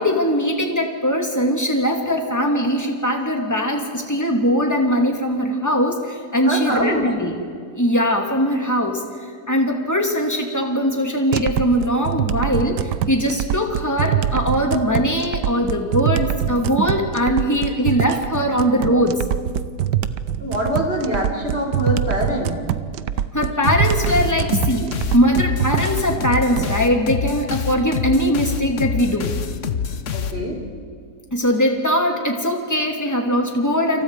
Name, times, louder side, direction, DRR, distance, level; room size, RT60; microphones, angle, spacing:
voice 1, 0.0-7.4 7.7-9.1 9.5-19.2 23.3-29.4 31.3-34.0, equal, 10° left, 2 dB, 2.6 m, -21 dB
voice 2, 6.4-7.1 20.4-22.6 30.1-30.6, equal, 35° right, 1 dB, 4.6 m, -24 dB
sound 1, 11.3-26.7, right 10 dB, 90° right, 1.4 m, -24 dB
sound 2, 23.6-30.8, left 7 dB, 50° left, 1.2 m, -26 dB
29.0 x 27.5 x 4.9 m, 2.2 s
omnidirectional pair, 1.8 m